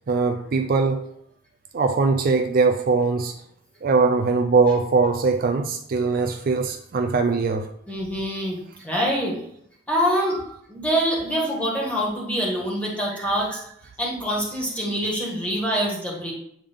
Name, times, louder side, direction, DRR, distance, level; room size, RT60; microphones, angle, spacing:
voice 1, 0.1-1.1 1.7-3.3 3.8-7.7 10.2-10.4 13.1-13.6, right 4 dB, 45° right, 5 dB, 0.3 m, -21 dB
voice 2, 7.9-9.3 9.9-10.4 10.7-13.6 14.0-16.3, equal, 5° left, -4 dB, 1.6 m, -25 dB
8.6 x 3.4 x 3.6 m, 0.72 s
head